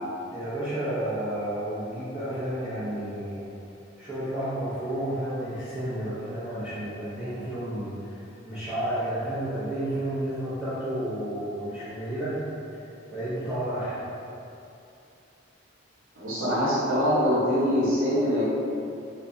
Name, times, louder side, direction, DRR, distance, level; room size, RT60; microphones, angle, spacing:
voice 1, 0.3-3.5 4.0-12.4 13.1-14.1, right 1 dB, 5° right, -16 dB, 0.6 m, -31 dB
voice 2, 16.2-18.4, equal, 85° right, -10 dB, 0.9 m, -23 dB
3.1 x 2.2 x 2.5 m, 2.7 s
head